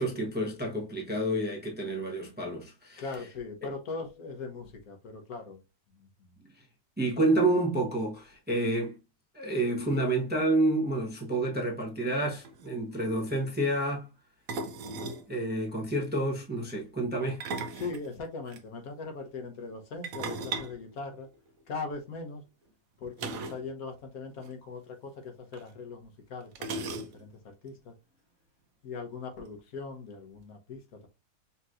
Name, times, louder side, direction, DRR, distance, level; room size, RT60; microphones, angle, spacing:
voice 1, 0.0-3.0 6.4-6.6 7.0-9.0 9.3-14.1 15.3-17.4, right 2 dB, 10° right, 0.8 m, -29 dB
voice 2, 3.0-5.6 6.0-6.1 17.8-21.3 21.7-22.4 23.0-26.9 27.2-27.9 28.8-31.1, left 4 dB, 65° left, 1.5 m, -40 dB
sound 1, 12.2-12.3 12.4-12.7 14.5-15.3 17.2-18.6 20.0-21.7 23.2-23.7 23.9-24.0 24.4-24.5 25.5-25.6 26.6-27.4, right 3 dB, 65° right, 1.0 m, -37 dB
5.5 x 3.0 x 2.5 m
omnidirectional pair, 1.7 m